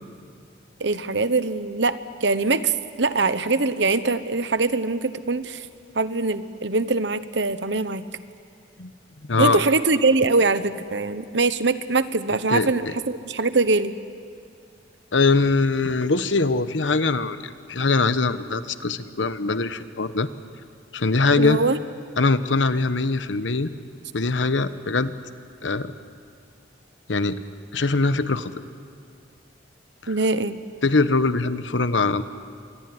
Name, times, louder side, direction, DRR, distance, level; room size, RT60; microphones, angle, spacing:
voice 1, 0.8-5.7 5.9-8.1 9.4-13.9 21.4-21.8 30.1-30.6, right 3 dB, 70° right, 13 dB, 1.1 m, -23 dB
voice 2, 9.3-9.6 12.5-12.7 15.1-20.3 20.9-21.6 22.2-23.7 24.1-25.1 25.6-25.9 27.1-27.4 27.7-28.5 30.0-30.1 30.8-32.2, left 3 dB, 80° left, 12 dB, 1.1 m, -22 dB
26.0 x 22.0 x 9.6 m, 2.4 s
head